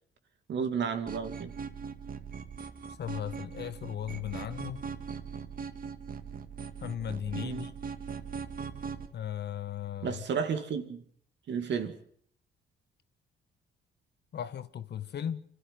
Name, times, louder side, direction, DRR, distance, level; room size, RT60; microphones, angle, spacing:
voice 1, 0.5-1.5 7.4-7.7 10.0-11.0 11.5-12.0, right 6 dB, 65° right, 2.4 m, -32 dB
sound 1, 1.1-9.1, right 6 dB, 45° right, 1.9 m, -40 dB
voice 2, 3.0-4.8 6.8-7.7 9.1-10.2 14.3-15.4, left 10 dB, 55° left, 1.5 m, -36 dB
25.5 x 13.0 x 9.3 m
cardioid pair, 90°, 20 cm